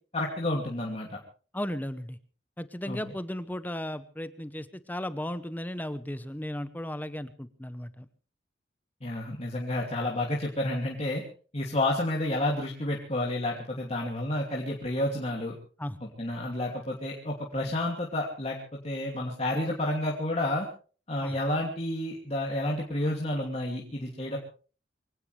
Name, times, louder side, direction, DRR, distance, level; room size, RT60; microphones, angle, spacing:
voice 1, 0.1-1.2 2.9-3.0 9.0-11.2 11.5-15.5 16.0-20.7 21.1-24.4, left 1 dB, 35° left, -2 dB, 2.7 m, -30 dB
voice 2, 1.5-2.2 2.6-8.1 15.8-16.0 21.2-21.4, left 1 dB, 10° left, 12 dB, 0.9 m, -35 dB
24.0 x 17.5 x 3.4 m, 0.39 s
head